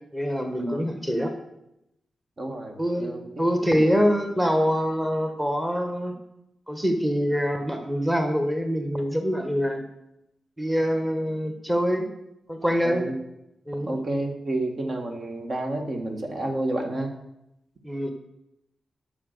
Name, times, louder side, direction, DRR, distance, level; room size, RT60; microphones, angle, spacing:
voice 1, 0.1-1.3 2.8-3.1 3.4-6.1 6.7-9.8 10.6-12.1 12.5-13.0 13.7-13.9 17.8-18.1, equal, 10° right, 5 dB, 1.5 m, -24 dB
voice 2, 2.4-3.2 3.8-3.9 12.8-13.2 13.9-17.1, right 2 dB, 50° right, 3 dB, 1.6 m, -30 dB
8.5 x 6.3 x 6.7 m, 0.86 s
cardioid pair, 60°, 0 cm